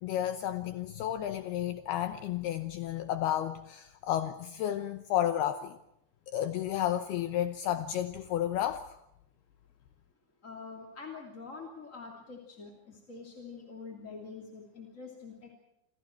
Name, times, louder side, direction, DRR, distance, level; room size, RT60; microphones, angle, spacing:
voice 1, 0.0-5.8 6.3-8.9, left 11 dB, 75° left, 9 dB, 2.6 m, -32 dB
voice 2, 10.4-15.5, left 4 dB, 20° left, 1 dB, 2.4 m, -45 dB
28.5 x 26.0 x 4.6 m, 0.83 s
omnidirectional pair, 5.2 m